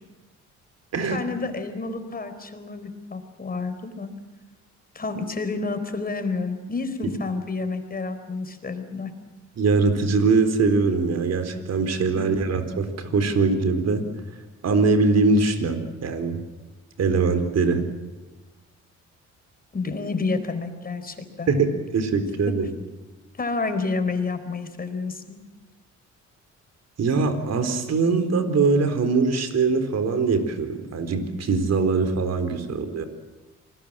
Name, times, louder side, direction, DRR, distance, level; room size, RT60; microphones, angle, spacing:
voice 1, 1.0-4.1 4.9-9.1 12.1-12.3 19.7-21.5 23.4-25.4, left 3 dB, 30° left, 9 dB, 4.3 m, -29 dB
voice 2, 9.6-14.0 14.6-16.4 17.0-17.8 21.5-22.7 27.0-33.0, right 4 dB, 55° right, 8 dB, 4.2 m, -22 dB
27.5 x 20.5 x 7.6 m, 1.2 s
cardioid pair, 90°, 30 cm